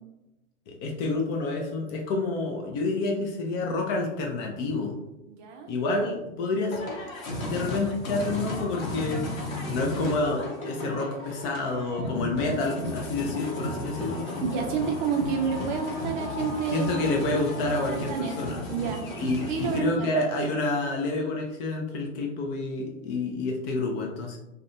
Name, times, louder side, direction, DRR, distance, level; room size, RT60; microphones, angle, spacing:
voice 1, 0.7-5.0 5.7-6.8 7.4-9.2 9.7-14.3 16.7-18.7 19.1-24.4, left 2 dB, 30° left, 1 dB, 0.4 m, -28 dB
voice 2, 5.3-5.7 14.4-17.0 17.8-19.0 19.5-20.1, right 6 dB, 40° right, 3 dB, 0.4 m, -29 dB
sound 1, 6.7-19.8, left 1 dB, 85° left, 0.7 m, -34 dB
2.4 x 2.2 x 2.6 m, 0.89 s
hypercardioid pair, 105°, 40 cm